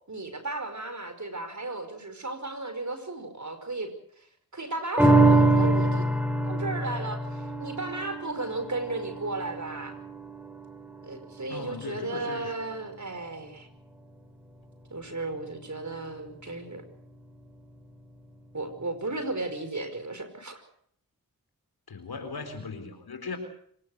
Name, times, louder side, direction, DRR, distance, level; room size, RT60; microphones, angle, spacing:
voice 1, 0.1-4.3 4.5-6.1 6.4-10.0 11.0-13.7 14.9-16.8 18.5-20.6, right 2 dB, 50° right, 9 dB, 5.3 m, -35 dB
sound 1, 5.0-11.6 12.1-12.2, right 2 dB, 5° right, 4.6 m, -25 dB
voice 2, 11.5-12.7 21.9-23.4, left 4 dB, 90° left, 8 dB, 4.2 m, -38 dB
26.0 x 18.5 x 6.5 m, 0.66 s
cardioid pair, 40°, 36 cm